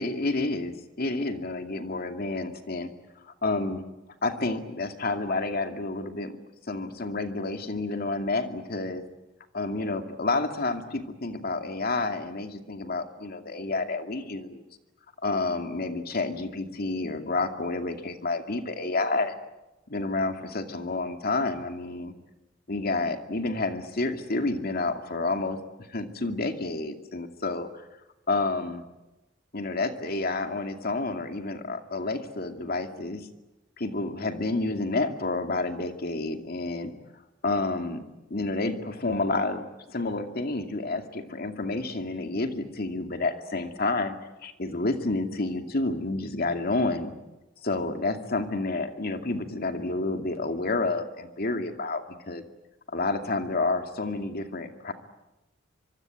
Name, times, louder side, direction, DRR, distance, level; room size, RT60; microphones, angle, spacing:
voice 1, 0.0-2.9 3.4-3.8 4.2-6.3 6.7-9.0 9.5-14.6 15.2-19.3 19.9-22.1 22.7-25.6 25.9-27.7 28.3-28.8 29.5-33.3 33.8-36.9 37.4-38.0 38.3-44.1 44.4-47.1 47.6-52.4 52.9-54.9, left 2 dB, 50° left, 6 dB, 2.4 m, -29 dB
25.0 x 24.0 x 9.0 m, 1.0 s
head